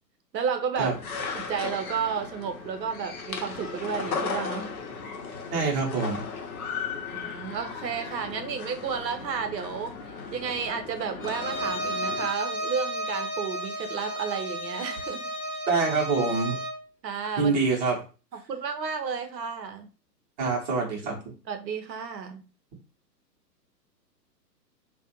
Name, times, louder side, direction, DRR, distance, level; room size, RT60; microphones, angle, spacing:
voice 1, 0.3-0.9 1.3-4.7 7.1-15.2 17.0-17.5 18.5-19.9 21.5-22.4, right 6 dB, 80° right, 7 dB, 0.6 m, -32 dB
sound 1, 0.9-12.3, left 5 dB, 60° left, 0.7 m, -36 dB
voice 2, 5.5-6.2 15.7-16.6 17.4-18.0 20.4-21.1, right 4 dB, 25° right, -2 dB, 0.7 m, -25 dB
Bowed string instrument, 11.2-16.8, right 1 dB, 20° left, 0.6 m, -33 dB
2.4 x 2.1 x 2.7 m, 0.35 s
figure-of-eight pair, 120°, 50 cm